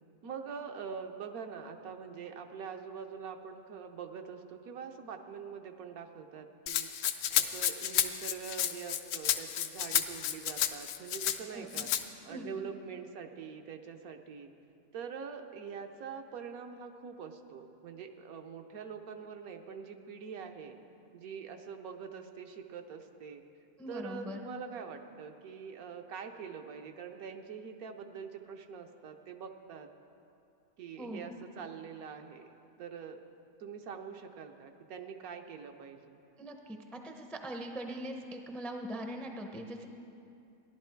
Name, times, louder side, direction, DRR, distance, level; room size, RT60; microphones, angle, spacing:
voice 1, 0.2-11.9 12.2-14.5 14.9-20.8 21.1-23.4 23.9-29.9 30.8-32.5 32.8-33.2 33.6-36.2, right 6 dB, 75° right, 5 dB, 1.2 m, -44 dB
Rattle (instrument), 6.7-11.4 11.7-12.0, left 10 dB, 80° left, 1.1 m, -31 dB
voice 2, 11.5-11.8 12.3-12.5 23.8-24.4 31.0-31.2 36.4-39.9, equal, ahead, 3 dB, 0.4 m, -41 dB
15.0 x 11.0 x 4.5 m, 2.6 s
omnidirectional pair, 1.6 m